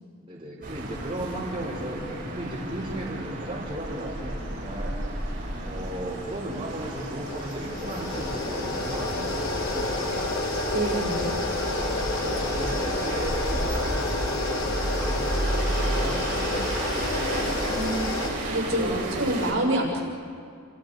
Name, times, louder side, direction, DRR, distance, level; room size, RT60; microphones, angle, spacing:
voice 1, 0.2-4.9 5.6-10.1 11.9-14.7 14.9-17.0 17.4-17.7 18.7-19.3, right 1 dB, 25° right, -6 dB, 5.1 m, -36 dB
sound 1, 0.6-19.5, right 1 dB, 45° right, 7.2 m, -34 dB
sound 2, 6.7-18.3, left 1 dB, 80° left, 3.9 m, -28 dB
voice 2, 10.7-11.4 17.7-18.2 18.5-20.0, right 1 dB, 70° right, -2 dB, 6.6 m, -27 dB
29.5 x 29.0 x 5.2 m, 2.2 s
head